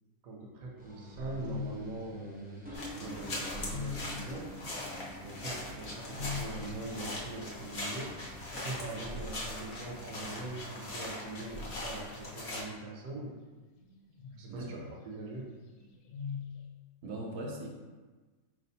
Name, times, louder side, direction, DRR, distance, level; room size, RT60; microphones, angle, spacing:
voice 1, 0.2-4.5 5.2-8.2 8.5-13.4 14.4-15.5, right 2 dB, 70° right, -2 dB, 1.1 m, -42 dB
sound 1, 0.8-12.0, equal, 15° right, 0.3 m, -47 dB
sound 2, 1.4-1.9 2.6-2.7 3.2-4.2 5.6-6.6 10.1-10.6 11.8-12.6 13.8-14.6 15.7-16.6, left 6 dB, 85° left, 1.1 m, -42 dB
sound 3, 2.7-12.6, left 2 dB, 50° left, 0.9 m, -41 dB
voice 2, 14.5-14.8 17.0-17.7, right 1 dB, 85° right, -2 dB, 1.2 m, -39 dB
4.3 x 3.4 x 2.7 m, 1.3 s
omnidirectional pair, 1.6 m